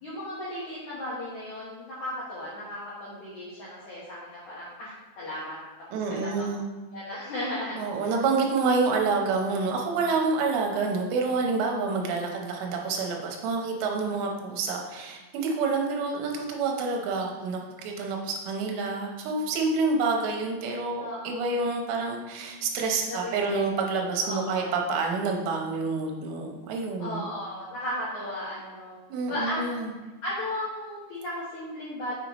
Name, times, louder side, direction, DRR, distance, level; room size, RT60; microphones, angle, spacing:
voice 1, 0.0-5.5 6.1-6.4 6.9-7.7 8.0-8.1 21.0-21.3 23.1-23.6 24.3-24.7 27.0-29.0 29.3-29.6 30.2-32.1, left 1 dB, 85° left, -8 dB, 1.6 m, -35 dB
voice 2, 5.9-6.7 7.8-27.3 29.1-29.9, right 4 dB, 85° right, 1 dB, 3.4 m, -28 dB
6.6 x 6.4 x 3.0 m, 1.2 s
omnidirectional pair, 5.6 m